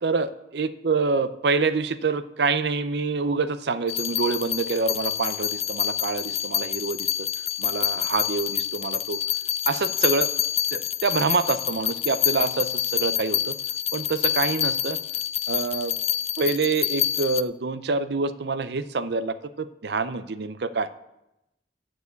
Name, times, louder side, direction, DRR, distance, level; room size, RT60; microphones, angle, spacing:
voice 1, 0.0-7.3 7.6-9.2 9.7-10.3 10.7-13.6 13.9-15.0 15.5-15.9 16.4-20.9, right 4 dB, 65° right, 13 dB, 0.6 m, -26 dB
sound 1, 3.9-17.4, left 11 dB, 35° left, 0.3 m, -27 dB
13.5 x 4.8 x 8.2 m, 0.91 s
head